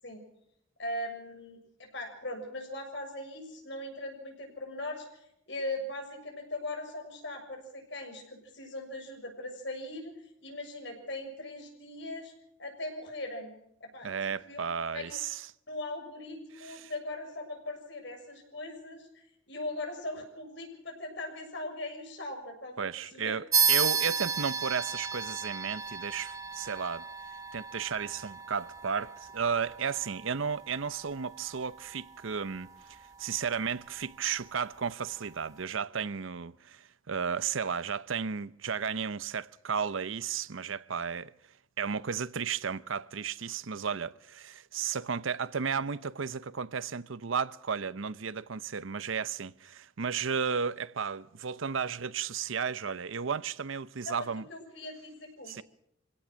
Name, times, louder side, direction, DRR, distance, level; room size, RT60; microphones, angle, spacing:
voice 1, 0.8-10.1 10.4-12.3 12.6-13.5 13.8-14.6 14.9-15.2 15.7-23.4 54.1-55.6, left 1 dB, 60° left, 6.8 m, -40 dB
voice 2, 14.0-15.4 16.7-16.9 22.8-27.1 27.5-41.3 41.8-54.4 55.5-55.6, right 6 dB, 80° right, 0.7 m, -34 dB
sound 1, 23.5-33.5, right 6 dB, 15° right, 1.5 m, -33 dB
25.5 x 17.5 x 6.3 m
head